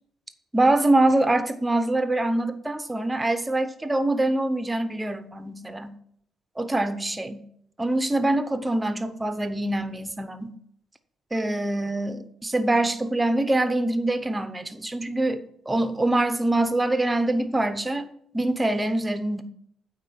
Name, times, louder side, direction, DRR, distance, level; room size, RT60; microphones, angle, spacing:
voice 1, 0.5-5.9 6.6-7.4 7.8-10.5 11.3-18.1 18.3-19.4, right 2 dB, 15° right, 0.8 m, -24 dB
8.8 x 4.4 x 6.9 m
cardioid pair, 90°, 0 cm